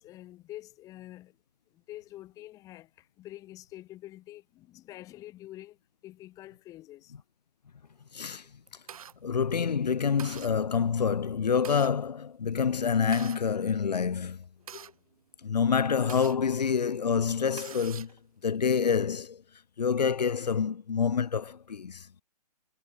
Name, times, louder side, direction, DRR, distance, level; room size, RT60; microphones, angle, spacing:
voice 1, 0.0-1.4 1.7-7.1, left 15 dB, 15° left, 0.8 m, -47 dB
voice 2, 8.1-8.4 9.2-14.4 15.4-18.1 18.4-19.4 19.8-22.1, left 6 dB, 80° left, 0.6 m, -27 dB
sound 1, 8.2-9.1 9.7-9.8 10.2-10.5 11.3-11.9 12.8-13.4 14.2-16.4 16.9-17.0 17.3-18.2, right 8 dB, 60° right, 1.6 m, -45 dB
figure-of-eight pair, 130°, 21 cm